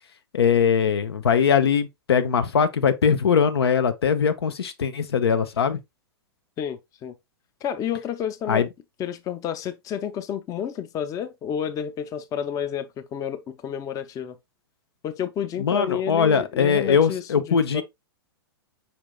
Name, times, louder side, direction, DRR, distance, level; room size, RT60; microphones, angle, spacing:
voice 1, 0.3-5.8 8.5-8.7 15.6-17.8, left 7 dB, 80° left, 0.6 m, -21 dB
voice 2, 6.6-7.1 7.6-8.7 9.0-14.4 15.0-17.8, left 9 dB, 25° left, 0.5 m, -30 dB
5.3 x 4.4 x 2.2 m
hypercardioid pair, 110°, 13 cm